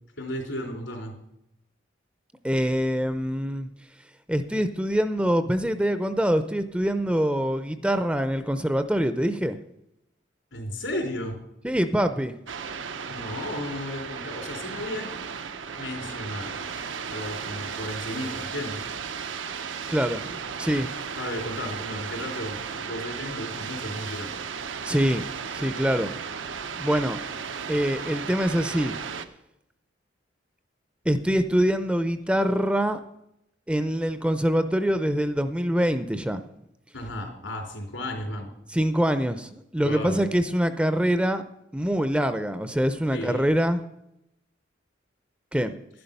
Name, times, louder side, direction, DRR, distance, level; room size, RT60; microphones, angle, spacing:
voice 1, 0.2-1.1 10.5-11.4 13.1-15.1 15.8-16.6 17.1-18.8 21.2-22.6 22.9-24.3 36.9-38.5 39.8-40.3 43.1-43.5, left 1 dB, 85° left, 0 dB, 3.8 m, -34 dB
voice 2, 2.4-3.7 4.3-9.6 11.6-12.4 19.9-20.9 24.8-25.2 25.5-26.1 26.8-27.2 27.7-29.0 31.1-33.0 33.7-36.4 38.7-41.4 41.7-43.8 45.5-45.7, equal, 5° right, 10 dB, 0.5 m, -24 dB
sound 1, 12.5-29.3, right 6 dB, 85° right, 0.8 m, -35 dB
11.5 x 11.0 x 5.4 m, 0.82 s
head